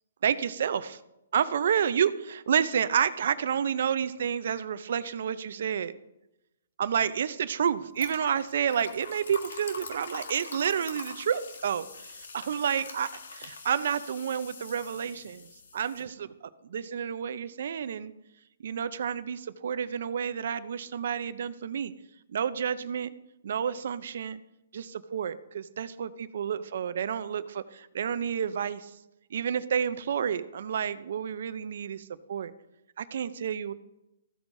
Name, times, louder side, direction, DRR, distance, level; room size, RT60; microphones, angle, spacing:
voice 1, 0.2-1.0 1.3-5.9 6.8-16.3 16.6-18.1 18.6-21.9 22.3-23.1 23.4-24.4 24.7-28.9 29.3-32.5 33.0-33.7, right 8 dB, 60° right, 14 dB, 0.5 m, -30 dB
sound 1, 8.0-16.0, left 4 dB, 75° left, 1.4 m, -44 dB
14.5 x 8.0 x 2.7 m, 0.92 s
hypercardioid pair, 150°, 0 cm